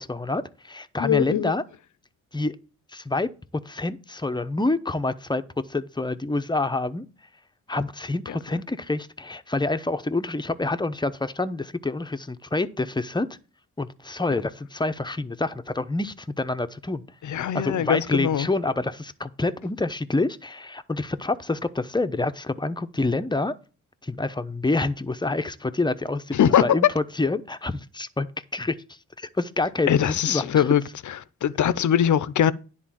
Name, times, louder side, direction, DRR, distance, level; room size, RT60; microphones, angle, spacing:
voice 1, 0.0-1.6 2.3-2.6 2.9-3.3 3.6-5.4 5.7-7.0 7.7-13.3 13.8-17.0 17.5-23.5 24.0-28.3 28.5-30.6, left 2 dB, 15° left, 0.8 m, -27 dB
voice 2, 1.0-1.5 8.3-8.4 14.3-14.4 17.2-18.5 26.3-26.8 29.9-30.8 31.1-31.2 31.4-32.5, left 9 dB, 60° left, 0.7 m, -21 dB
10.5 x 4.0 x 7.4 m
cardioid pair, 70°, 33 cm